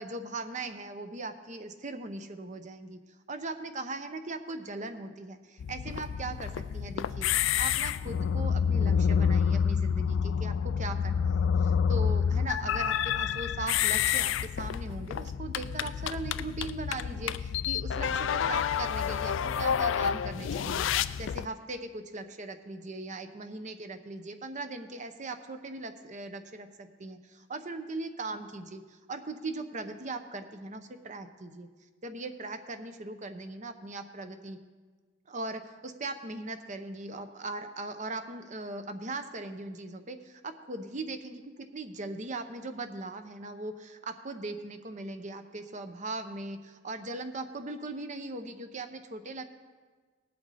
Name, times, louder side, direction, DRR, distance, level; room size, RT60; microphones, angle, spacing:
voice 1, 0.0-3.0 3.3-31.7 32.0-34.6 35.3-41.4 41.7-49.4, right 2 dB, 40° right, 8 dB, 0.8 m, -39 dB
sound 1, 5.6-21.5, left 7 dB, 75° left, 0.3 m, -28 dB
18.5 x 7.7 x 4.2 m, 1.4 s
head